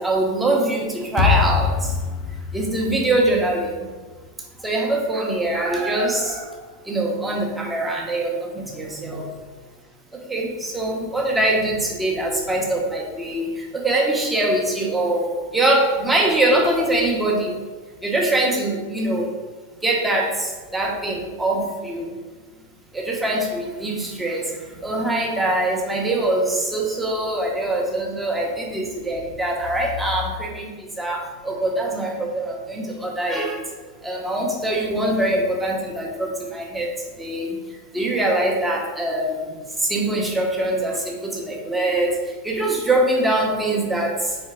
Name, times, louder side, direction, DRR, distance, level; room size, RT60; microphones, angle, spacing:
voice 1, 0.0-1.9 2.5-3.9 4.6-6.4 6.9-9.3 10.3-17.6 18.0-19.3 19.8-22.1 22.9-24.5 24.8-33.6 34.0-36.9 37.2-37.6 37.9-39.5 39.8-42.1 42.4-44.3, right 1 dB, 10° right, -1 dB, 1.3 m, -23 dB
sound 1, 1.2-4.3, left 6 dB, 35° left, 0.6 m, -24 dB
sound 2, 5.1-7.3 7.6-7.7 8.9-9.0, right 4 dB, 35° right, 1.0 m, -34 dB
4.8 x 4.3 x 5.0 m, 1.4 s
figure-of-eight pair, 90°, 0 cm